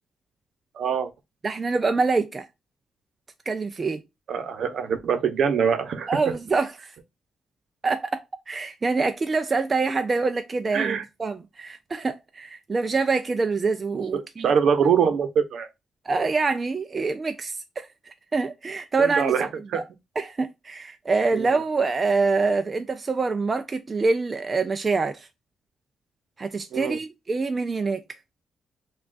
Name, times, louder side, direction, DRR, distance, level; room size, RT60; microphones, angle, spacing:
voice 1, 0.7-1.1 4.3-6.3 10.7-11.0 14.1-15.7 19.0-19.8 21.3-21.5 26.7-27.0, right 7 dB, 60° right, 0.7 m, -24 dB
voice 2, 1.4-2.5 3.5-4.0 6.1-6.9 7.8-14.5 16.0-19.3 19.7-19.8 20.2-25.3 26.4-28.0, right 4 dB, 25° right, 0.3 m, -25 dB
5.9 x 2.3 x 2.4 m
wide cardioid pair, 165°, 0 cm